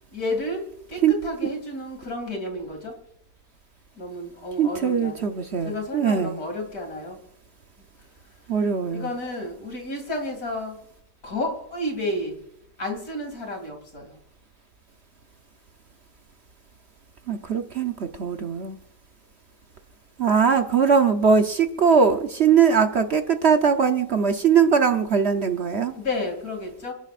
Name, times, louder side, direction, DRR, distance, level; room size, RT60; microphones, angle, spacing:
voice 1, 0.1-0.6 0.9-2.9 4.0-5.3 5.6-7.2 8.9-10.8 11.2-12.4 12.8-14.2 25.9-26.9, left 1 dB, 55° left, 2 dB, 3.3 m, -31 dB
voice 2, 4.6-6.4 8.5-9.1 17.3-18.8 20.2-25.9, right 6 dB, 50° right, 6 dB, 0.9 m, -21 dB
29.0 x 10.0 x 2.5 m, 0.71 s
omnidirectional pair, 1.8 m